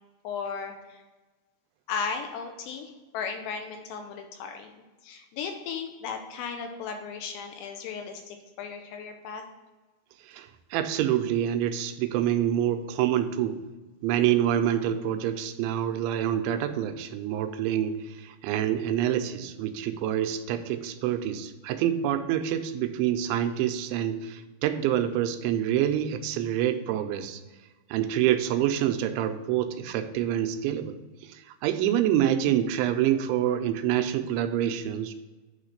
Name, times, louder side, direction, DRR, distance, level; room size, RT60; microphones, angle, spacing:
voice 1, 0.2-1.0 1.9-9.4, left 6 dB, 80° left, 4 dB, 2.7 m, -36 dB
voice 2, 10.2-13.6 14.0-27.4 27.9-30.9 31.2-35.1, right 11 dB, 85° right, 8 dB, 2.9 m, -27 dB
8.9 x 3.2 x 6.5 m, 1.2 s
omnidirectional pair, 5.2 m